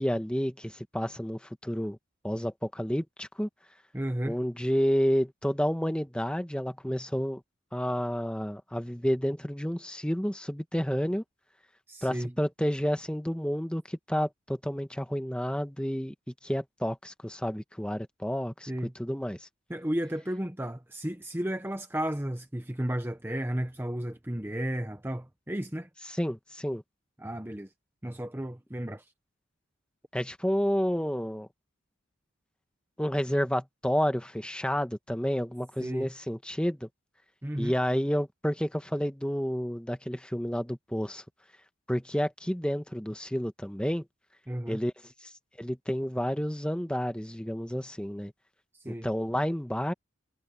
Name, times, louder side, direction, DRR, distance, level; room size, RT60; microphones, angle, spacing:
voice 1, 0.0-2.0 2.2-3.5 4.2-7.4 7.7-11.2 12.0-16.1 16.4-19.5 26.1-26.8 30.1-31.5 33.0-36.9 37.6-41.2 41.9-44.0 44.7-48.3 48.9-49.9, equal, 5° left, 1.2 m, -30 dB
voice 2, 3.9-4.4 11.9-12.3 18.7-18.9 19.7-25.9 27.2-27.7 28.0-29.1 35.8-36.1 37.4-37.7 44.5-44.8 48.7-49.1, right 1 dB, 10° right, 0.9 m, -33 dB
head